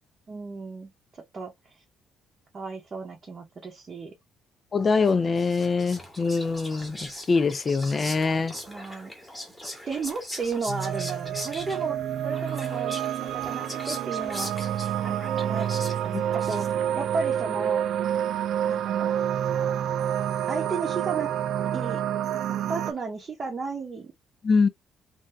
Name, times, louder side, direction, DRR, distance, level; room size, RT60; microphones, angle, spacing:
voice 1, 0.3-1.8 2.5-4.1 8.6-9.1 9.9-12.0 12.2-15.7 16.0-17.8 18.6-19.1 20.5-21.3 21.7-22.0 22.7-24.1, right 4 dB, 30° right, 0.8 m, -34 dB
voice 2, 4.7-7.0 7.3-8.5 16.1-16.2 24.4-24.7, left 4 dB, 25° left, 0.4 m, -23 dB
Whispering, 5.1-17.0, equal, ahead, 1.1 m, -40 dB
sound 1, 10.7-22.9, right 10 dB, 55° right, 0.3 m, -28 dB
3.4 x 2.7 x 2.5 m
cardioid pair, 165°, 0 cm